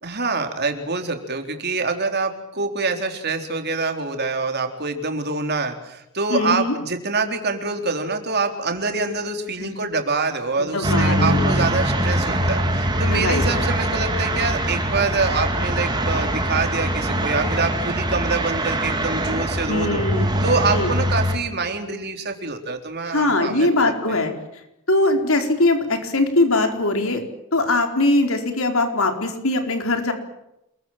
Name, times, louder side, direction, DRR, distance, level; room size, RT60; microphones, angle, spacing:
voice 1, 0.0-20.0 20.4-23.9, right 3 dB, 45° right, 5 dB, 4.0 m, -25 dB
voice 2, 6.3-6.7 9.6-9.7 10.6-11.6 13.1-13.6 19.7-20.3 20.7-20.9 23.1-24.3 24.9-27.2 27.5-30.1, left 2 dB, 65° left, 5 dB, 4.5 m, -21 dB
sound 1, 10.8-21.4, right 1 dB, 20° right, 4.1 m, -22 dB
29.0 x 23.0 x 7.5 m, 0.86 s
head